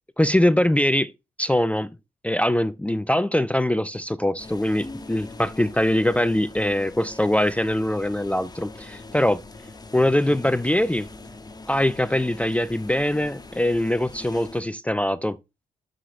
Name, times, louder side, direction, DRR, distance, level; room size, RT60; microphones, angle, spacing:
voice 1, 0.2-1.1 1.4-1.9 2.2-9.4 9.9-11.1 11.7-15.4, left 1 dB, 5° left, 0.5 m, -22 dB
sound 1, 4.4-14.6, left 2 dB, 20° left, 1.3 m, -42 dB
7.4 x 6.7 x 5.8 m
supercardioid pair, 60°, 18 cm